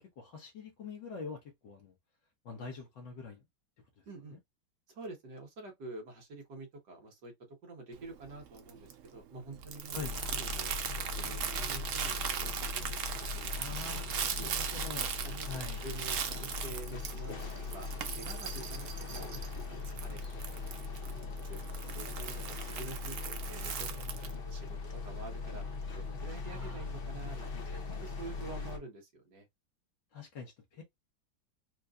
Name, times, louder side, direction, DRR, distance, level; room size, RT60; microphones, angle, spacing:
voice 1, 0.0-1.9 2.4-3.4 4.0-4.1 9.9-10.2 13.5-15.1 15.4-15.8 26.5-26.9 30.1-30.8, left 5 dB, 65° left, 1.5 m, -44 dB
voice 2, 4.1-4.4 4.9-13.6 13.8-13.9 14.3-14.5 15.2-15.5 15.8-16.2 16.4-19.3 19.7-20.2 20.5-20.7 21.0-24.8 25.0-25.6 25.9-29.5, right 2 dB, 55° right, 1.9 m, -48 dB
Crumpling crinkling, 7.9-24.3, right 8 dB, 90° right, 0.6 m, -39 dB
sound 1, 9.9-28.8, left 4 dB, 45° left, 0.7 m, -40 dB
4.6 x 2.5 x 2.4 m
omnidirectional pair, 2.2 m